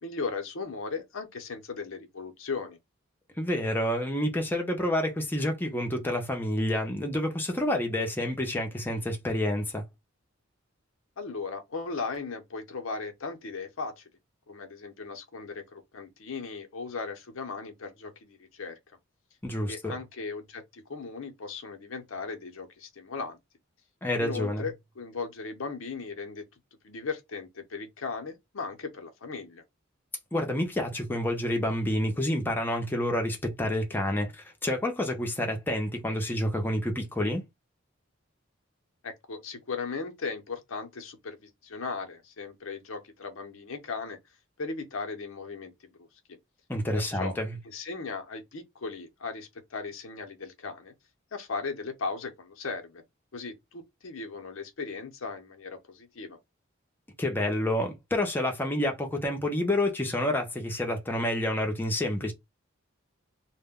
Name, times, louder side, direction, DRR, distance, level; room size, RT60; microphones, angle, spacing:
voice 1, 0.0-2.8 11.2-14.0 14.5-18.8 19.7-23.4 24.2-26.4 26.8-29.6 39.0-44.2 44.6-46.1 47.0-47.4 47.6-50.9 51.3-53.0 53.3-56.4, left 4 dB, 85° left, 0.7 m, -37 dB
voice 2, 3.4-9.8 19.4-19.9 24.0-24.7 30.3-37.4 46.7-47.6 57.2-62.3, left 1 dB, 10° left, 0.5 m, -28 dB
2.1 x 2.1 x 3.5 m
head